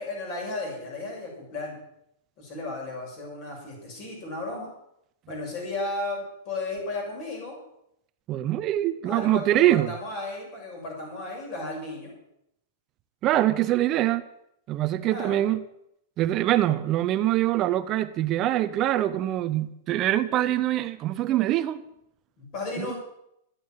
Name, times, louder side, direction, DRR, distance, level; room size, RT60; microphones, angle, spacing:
voice 1, 0.0-1.8 2.4-4.7 5.3-7.6 9.0-12.1 15.1-15.4 22.4-22.9, left 2 dB, 30° left, 6.4 m, -34 dB
voice 2, 8.3-9.9 13.2-14.2 14.7-15.6 16.2-21.8 22.8-22.9, right 14 dB, 25° right, 0.6 m, -24 dB
13.5 x 9.4 x 9.1 m
supercardioid pair, 175°, 0 cm